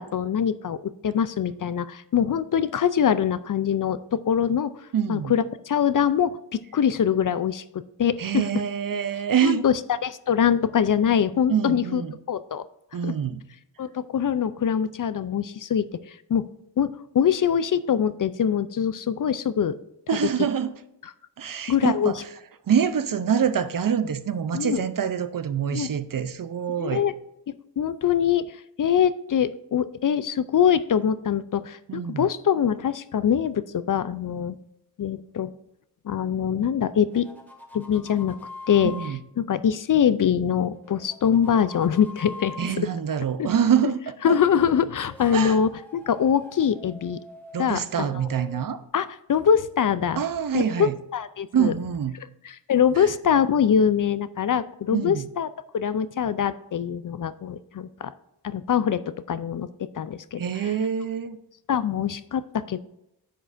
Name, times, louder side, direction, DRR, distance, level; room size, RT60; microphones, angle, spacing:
voice 1, 0.0-4.7 5.1-7.6 8.0-8.3 9.4-9.7 10.0-12.0 12.3-12.6 13.0-13.1 13.8-16.4 16.8-19.7 21.7-22.1 24.5-24.8 25.7-25.9 26.8-27.1 27.8-34.6 35.0-35.5 36.1-37.3 37.7-38.4 38.7-38.9 39.4-42.6 43.4-43.5 44.2-47.2 47.6-48.1 48.9-50.2 50.5-51.7 52.4-55.5 55.7-58.1 58.4-59.7 59.9-60.4 61.7-62.8, left 8 dB, 50° left, 15 dB, 0.4 m, -23 dB
voice 2, 4.9-5.3 8.2-9.6 11.5-12.2 12.9-13.4 20.1-20.8 21.4-22.3 22.7-27.0 31.9-32.3 38.8-39.2 42.6-44.4 45.3-45.6 47.5-48.8 50.2-50.9 51.5-52.2 53.0-53.1 54.9-55.3 60.4-61.4, right 8 dB, 50° right, 12 dB, 0.6 m, -25 dB
sound 1, 36.9-39.1 40.6-42.7 44.8-48.9, left 2 dB, 5° left, 1.9 m, -44 dB
10.0 x 7.2 x 2.6 m, 0.84 s
wide cardioid pair, 95°, 42 cm